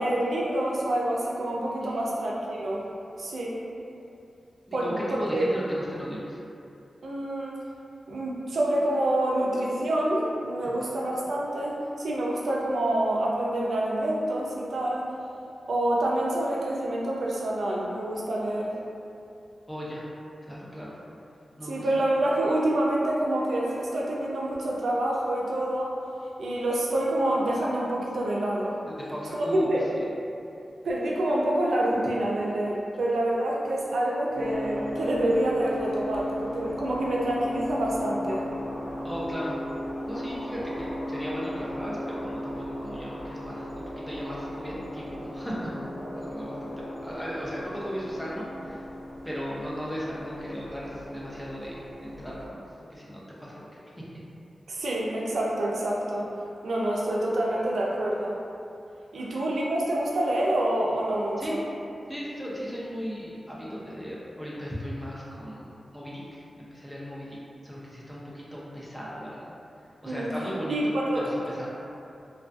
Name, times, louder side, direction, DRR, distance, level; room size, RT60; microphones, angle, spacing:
voice 1, 0.0-2.9 3.2-3.6 4.7-5.5 7.0-7.6 8.1-15.1 15.7-18.7 21.6-25.9 26.4-28.8 29.3-29.9 30.8-38.5 54.7-56.3 56.6-58.4 59.1-61.6 70.1-70.3 70.7-71.3, right 1 dB, 80° right, -4 dB, 0.4 m, -27 dB
voice 2, 4.7-6.4 10.6-10.7 19.7-20.1 20.5-21.0 21.6-22.0 28.9-29.8 39.0-39.6 40.1-45.7 46.1-48.8 49.2-53.9 59.1-59.3 61.4-61.6 62.1-65.7 65.9-67.4 67.6-69.6 70.0-71.7, equal, ahead, -6 dB, 0.4 m, -36 dB
sound 1, 34.3-52.5, left 1 dB, 85° left, 0.5 m, -36 dB
2.3 x 2.2 x 2.5 m, 2.6 s
wide cardioid pair, 155°, 0 cm